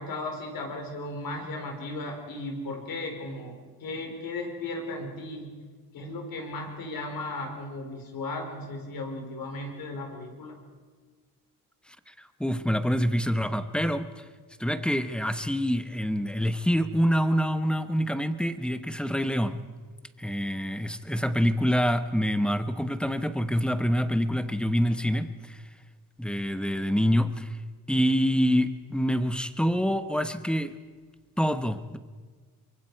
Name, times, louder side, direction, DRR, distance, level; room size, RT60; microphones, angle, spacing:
voice 1, 0.0-5.6 5.9-10.6, left 2 dB, 80° left, 2 dB, 4.4 m, -36 dB
voice 2, 12.4-14.2 14.6-19.6 20.2-25.6 26.2-27.6 27.9-30.7 31.4-32.0, equal, 5° left, 10 dB, 1.1 m, -26 dB
24.0 x 23.0 x 4.8 m, 1.5 s
cardioid pair, 100°, 34 cm